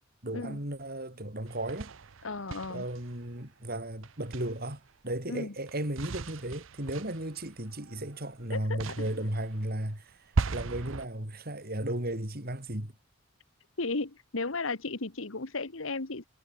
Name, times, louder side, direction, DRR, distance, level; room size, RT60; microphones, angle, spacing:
voice 1, 0.2-1.9 2.7-10.1 10.5-12.9, right 1 dB, 45° right, 4.5 m, -35 dB
sound 1, 1.5-3.4 4.0-4.9 5.7-8.4 8.8-11.1, right 3 dB, 70° right, 0.7 m, -37 dB
voice 2, 2.2-2.9 5.3-5.5 8.5-8.8 13.8-16.2, left 3 dB, 70° left, 1.5 m, -34 dB
head